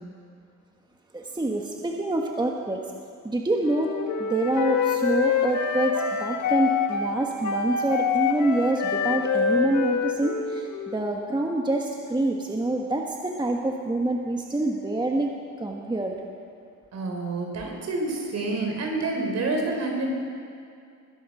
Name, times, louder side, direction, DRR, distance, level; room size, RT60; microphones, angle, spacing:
voice 1, 1.1-2.8 3.2-3.9 4.2-15.3 15.6-16.2, right 2 dB, 15° right, 1 dB, 1.3 m, -26 dB
Wind instrument woodwind instrument, 3.6-11.1, left 6 dB, 70° left, 1.5 m, -26 dB
voice 2, 16.9-20.1, right 2 dB, 60° right, 1 dB, 3.9 m, -28 dB
21.0 x 10.5 x 5.5 m, 2.3 s
cardioid pair, 90°, 30 cm